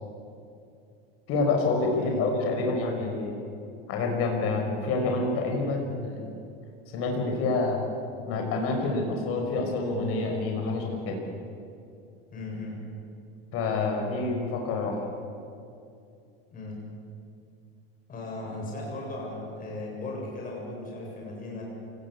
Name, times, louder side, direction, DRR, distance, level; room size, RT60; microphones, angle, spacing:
voice 1, 1.3-3.4 3.9-6.2 6.9-7.8 8.3-11.2 13.5-15.0, left 3 dB, 50° left, 2 dB, 5.8 m, -27 dB
voice 2, 12.3-12.8 16.5-16.8 18.1-21.6, left 2 dB, 30° left, -2 dB, 7.5 m, -37 dB
28.0 x 19.0 x 8.6 m, 2.5 s
supercardioid pair, 130°, 30 cm